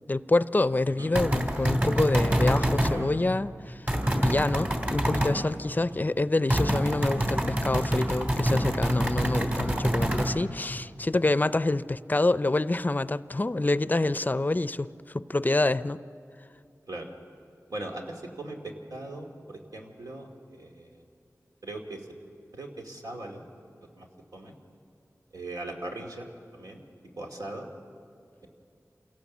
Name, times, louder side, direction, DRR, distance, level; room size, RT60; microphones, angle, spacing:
voice 1, 0.1-3.8 4.2-14.9 15.1-16.0, left 2 dB, 30° left, 15 dB, 0.5 m, -26 dB
sound 1, 1.2-3.0 3.9-5.4 6.5-10.3, equal, 30° right, 2.8 m, -26 dB
voice 2, 17.7-21.0 21.6-22.1 22.5-23.4 24.0-24.5 25.3-26.3 26.5-26.8 27.2-27.7, right 2 dB, 90° right, 1 dB, 2.4 m, -39 dB
27.5 x 17.5 x 7.3 m, 2.6 s
wide cardioid pair, 75°, 6 cm